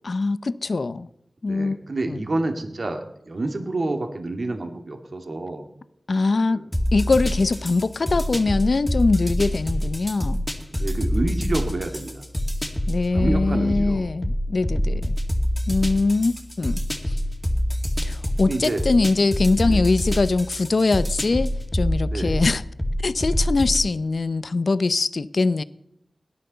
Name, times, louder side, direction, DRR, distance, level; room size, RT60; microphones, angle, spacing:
voice 1, 0.0-1.1 1.4-1.8 2.1-2.2 6.1-6.6 6.9-10.4 12.9-15.2 15.7-17.2 18.0-22.6 23.0-25.6, left 3 dB, 65° left, 0.6 m, -22 dB
voice 2, 1.5-5.7 6.5-6.7 10.7-12.2 13.1-14.0 18.5-18.9 19.6-19.9 22.1-22.4, right 2 dB, 60° right, 2.2 m, -28 dB
sound 1, 6.7-23.9, equal, 10° left, 2.3 m, -26 dB
17.5 x 11.5 x 6.8 m
wide cardioid pair, 75°, 0 cm